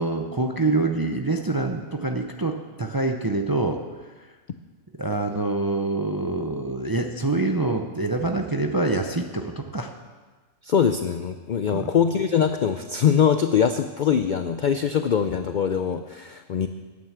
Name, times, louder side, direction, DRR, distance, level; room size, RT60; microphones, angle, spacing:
voice 1, 0.0-3.8 4.2-4.3 5.0-9.9 11.7-11.9, right 2 dB, 30° right, 5 dB, 0.4 m, -25 dB
voice 2, 10.6-16.7, left 7 dB, 75° left, 9 dB, 0.4 m, -22 dB
9.8 x 9.1 x 7.3 m, 1.4 s
omnidirectional pair, 1.4 m